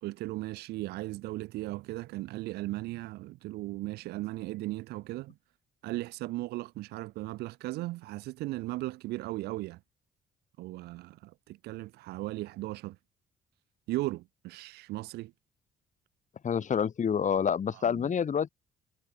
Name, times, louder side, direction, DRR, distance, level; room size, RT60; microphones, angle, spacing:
voice 1, 0.0-5.4 5.8-9.8 10.6-13.0 13.9-15.3 17.7-18.1, right 18 dB, 90° right, 2.7 m, -37 dB
voice 2, 16.4-18.5, left 7 dB, 50° left, 2.7 m, -28 dB
supercardioid pair, 70°, 16 cm